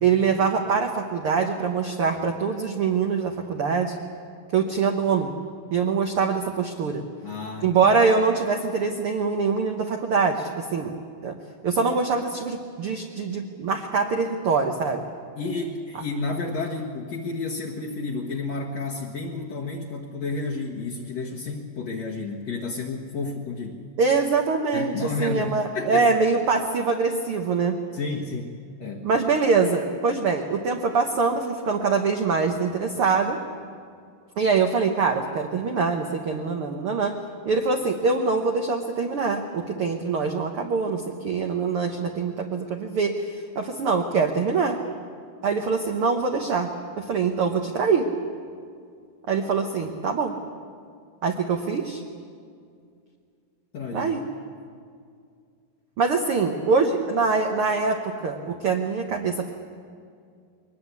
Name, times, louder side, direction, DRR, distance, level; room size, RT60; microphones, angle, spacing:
voice 1, 0.0-4.0 4.5-5.3 5.7-7.0 7.6-10.9 11.2-11.3 11.6-15.0 24.0-27.8 29.0-33.4 34.4-37.1 37.4-43.1 43.5-44.8 45.4-46.7 47.0-48.1 49.3-50.4 51.2-52.0 53.9-54.2 56.0-59.5, right 5 dB, 65° right, 3 dB, 1.4 m, -24 dB
voice 2, 7.2-7.9 15.4-23.8 24.7-26.1 27.9-28.5 28.8-29.1 53.7-54.1, left 3 dB, 60° left, -1 dB, 2.2 m, -31 dB
22.0 x 19.5 x 8.3 m, 2.2 s
omnidirectional pair, 4.0 m